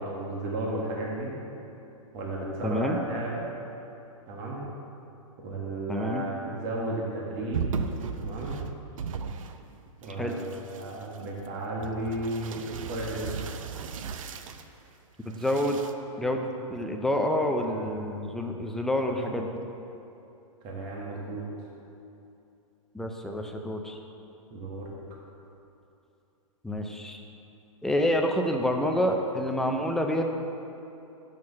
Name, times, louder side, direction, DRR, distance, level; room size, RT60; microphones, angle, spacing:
voice 1, 0.0-1.3 2.1-3.5 4.3-4.6 5.4-7.6 8.2-8.6 10.0-10.4 10.7-13.3 20.6-21.4 24.5-24.9, right 1 dB, 40° right, -3 dB, 1.6 m, -33 dB
voice 2, 2.6-3.0 5.9-6.3 10.2-10.3 15.2-15.8 16.2-19.5 22.9-24.0 26.6-27.2 27.8-30.2, left 1 dB, ahead, 2 dB, 0.5 m, -28 dB
sound 1, 7.5-9.7 10.0-14.7 15.3-15.9, right 6 dB, 70° right, 0.6 m, -36 dB
6.7 x 6.2 x 7.2 m, 2.8 s
hypercardioid pair, 140°, 17 cm